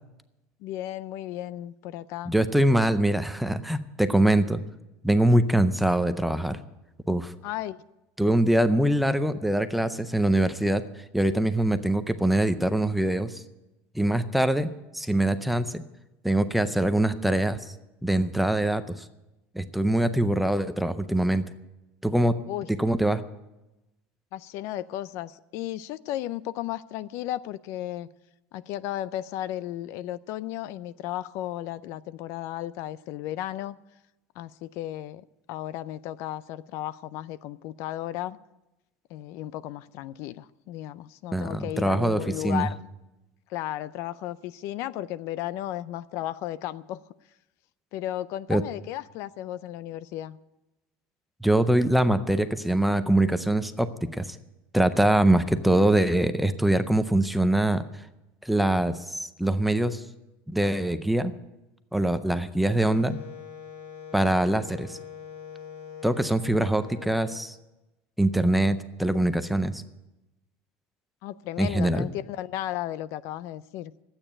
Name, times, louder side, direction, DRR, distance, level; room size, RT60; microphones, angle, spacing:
voice 1, 0.6-2.3 7.4-7.8 22.5-22.7 24.3-28.1 28.5-33.8 34.4-38.4 39.1-42.8 43.5-47.0 47.9-50.4 71.2-73.9, left 13 dB, 50° left, 16 dB, 0.4 m, -34 dB
voice 2, 2.3-4.6 5.0-6.6 7.1-7.3 8.2-13.4 13.9-15.8 16.2-17.6 18.0-19.0 19.5-21.4 22.0-22.4 22.7-23.2 41.3-42.7 48.5-48.6 51.4-54.4 54.7-57.8 58.4-60.0 60.5-61.3 61.9-63.2 64.1-65.0 66.0-67.6 68.2-69.8 71.6-72.1, right 1 dB, ahead, 10 dB, 0.5 m, -23 dB
Wind instrument woodwind instrument, 62.8-67.4, left 8 dB, 90° left, 3.5 m, -43 dB
12.5 x 8.9 x 9.9 m, 0.98 s
cardioid pair, 170°, 6 cm